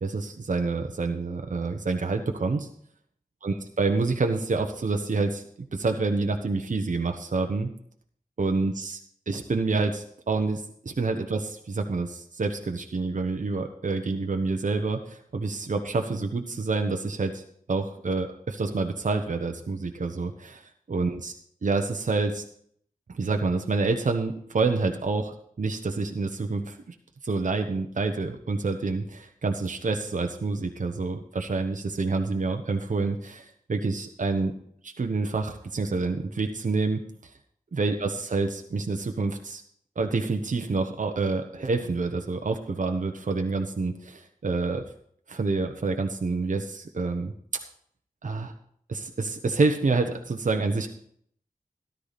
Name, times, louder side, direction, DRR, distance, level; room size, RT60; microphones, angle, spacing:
voice 1, 0.0-2.7 3.4-5.5 5.7-7.7 8.4-9.0 9.3-17.4 17.7-21.3 21.6-22.4 23.1-26.9 27.2-34.5 34.8-37.3 37.7-39.6 40.0-44.8 45.3-47.3 48.2-48.5 48.9-50.9, right 3 dB, 60° right, 4 dB, 1.1 m, -28 dB
13.5 x 12.0 x 4.2 m, 0.64 s
wide cardioid pair, 60°, 15 cm